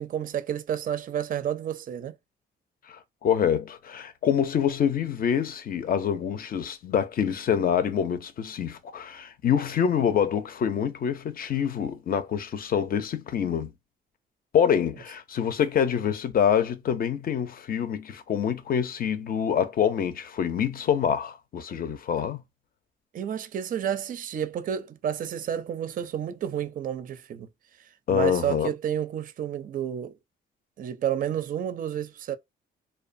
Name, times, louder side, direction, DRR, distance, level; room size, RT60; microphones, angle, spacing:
voice 1, 0.0-2.1 23.1-27.5 28.1-30.1 30.8-32.4, right 9 dB, 45° right, 0.4 m, -30 dB
voice 2, 2.9-13.7 14.5-22.4 28.1-28.7, left 8 dB, 45° left, 0.5 m, -26 dB
2.6 x 2.2 x 2.5 m
cardioid pair, 90°, 20 cm